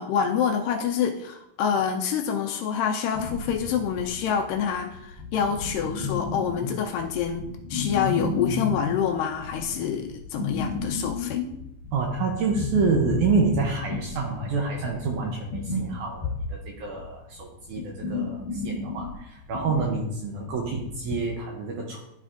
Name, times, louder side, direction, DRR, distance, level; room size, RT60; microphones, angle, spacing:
voice 1, 0.0-11.4, left 7 dB, 80° left, 2 dB, 2.0 m, -27 dB
sound 1, 3.1-21.3, left 3 dB, 65° left, 1.4 m, -33 dB
voice 2, 11.9-22.0, right 4 dB, 75° right, 0 dB, 1.8 m, -28 dB
12.5 x 4.2 x 2.5 m, 0.84 s
omnidirectional pair, 4.2 m